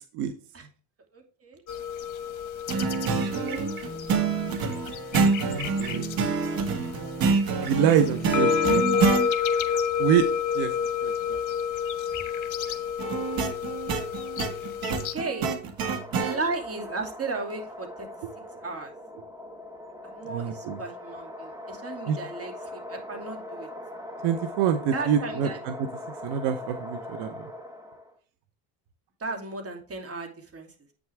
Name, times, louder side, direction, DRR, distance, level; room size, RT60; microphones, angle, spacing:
voice 1, 1.1-1.6 3.3-4.0 15.0-15.5 16.1-18.1 18.6-18.9 20.0-23.7 24.9-25.6 29.2-30.7, right 3 dB, 35° right, 3 dB, 2.7 m, -35 dB
sound 1, 1.7-15.1, left 7 dB, 45° left, 1.3 m, -30 dB
sound 2, 2.7-9.3 13.0-16.4, right 5 dB, 60° right, 1.9 m, -27 dB
voice 2, 5.5-6.1 6.8-6.9 7.6-8.9 10.0-10.3 10.5-10.7 11.0-11.4 20.3-20.8 22.1-22.2 24.2-25.7 26.2-27.4, right 8 dB, 80° right, 8 dB, 1.0 m, -26 dB
sound 3, 15.7-28.2, left 1 dB, 10° right, 1.7 m, -41 dB
8.6 x 6.2 x 3.4 m, 0.39 s
supercardioid pair, 90°, 41 cm